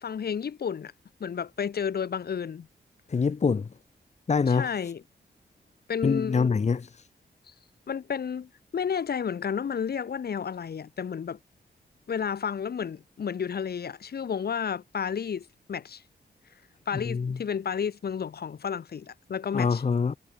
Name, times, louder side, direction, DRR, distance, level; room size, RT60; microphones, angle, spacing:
voice 1, 0.0-0.9 1.2-2.7 4.5-5.0 5.9-6.5 7.9-11.4 12.1-16.0 16.9-19.8, left 7 dB, 65° left, 2.1 m, -31 dB
voice 2, 3.1-3.7 4.3-4.7 6.0-6.9 17.0-17.4 19.5-20.2, left 5 dB, 40° left, 1.3 m, -25 dB
wide cardioid pair, 100°, 17 cm